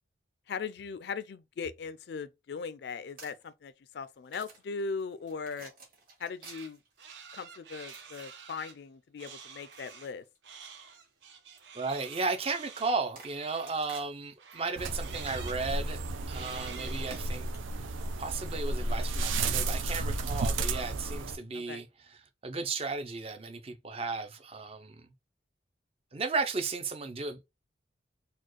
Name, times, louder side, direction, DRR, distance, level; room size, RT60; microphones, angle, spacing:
voice 1, 0.5-5.7 6.2-6.8 7.3-10.2 21.5-21.8, left 5 dB, 60° left, 0.3 m, -39 dB
sound 1, 2.9-3.5 4.2-7.2 7.8-8.5 9.2-10.4 10.9-11.2 11.5-11.7 12.6-14.6 15.0-19.2, right 4 dB, 50° right, 1.8 m, -54 dB
sound 2, 6.4-6.7 7.0-8.7 9.2-10.1 10.4-14.1 14.4-15.6 16.3-17.2, right 6 dB, 70° right, 0.8 m, -49 dB
voice 2, 11.7-16.0 16.3-17.5 17.8-21.9 22.4-25.1 26.1-27.4, right 4 dB, 30° right, 0.4 m, -34 dB
sound 3, 14.8-21.4, right 2 dB, 85° right, 0.5 m, -33 dB
4.2 x 2.3 x 3.0 m
head